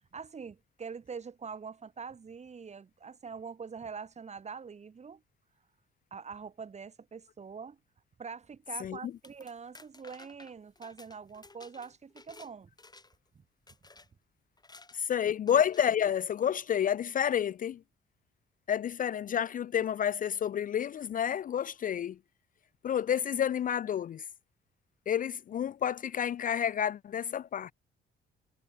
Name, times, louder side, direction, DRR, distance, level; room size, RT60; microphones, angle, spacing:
voice 1, 0.1-5.2 6.1-7.8 8.2-12.7 13.3-13.4, right 5 dB, 35° right, 1.4 m, -44 dB
voice 2, 8.8-9.1 14.9-17.8 18.7-22.2 22.8-24.2 25.1-27.7, left 9 dB, 45° left, 0.4 m, -30 dB
sound 1, 9.0-12.5 12.8-13.3 13.7-14.1 14.6-15.0 15.5-15.9, left 3 dB, 20° left, 6.3 m, -55 dB
cardioid pair, 90°, 20 cm